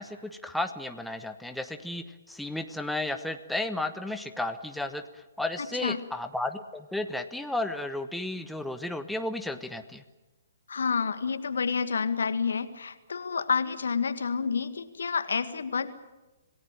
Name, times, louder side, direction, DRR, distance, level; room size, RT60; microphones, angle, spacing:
voice 1, 0.0-5.0 5.4-10.0, left 2 dB, ahead, 7 dB, 1.2 m, -33 dB
voice 2, 10.7-15.9, left 5 dB, 65° left, 11 dB, 1.8 m, -29 dB
27.0 x 18.0 x 8.9 m, 1.1 s
figure-of-eight pair, 125°, 0 cm